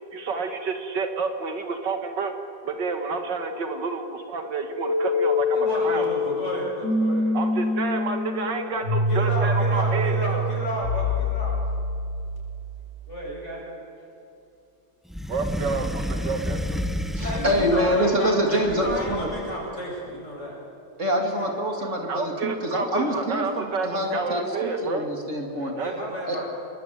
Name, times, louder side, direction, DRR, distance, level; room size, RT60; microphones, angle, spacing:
voice 1, 0.1-2.3 2.7-6.1 7.3-10.4 15.3-16.8 21.8-25.1 25.6-25.9, right 4 dB, 80° right, 5 dB, 2.6 m, -29 dB
sound 1, 4.8-12.7, left 2 dB, 70° left, 4.7 m, -25 dB
voice 2, 5.5-7.3 9.1-11.6 13.1-13.7 17.2-20.6 21.4-21.5 25.8-26.5, equal, 40° left, -3 dB, 8.5 m, -32 dB
sound 2, 15.1-18.1 18.7-19.6, left 1 dB, ahead, 0.8 m, -30 dB
voice 3, 17.1-19.3 21.0-25.7 26.3-26.4, equal, 45° right, 1 dB, 2.8 m, -25 dB
28.0 x 22.5 x 9.2 m, 2.7 s
omnidirectional pair, 1.9 m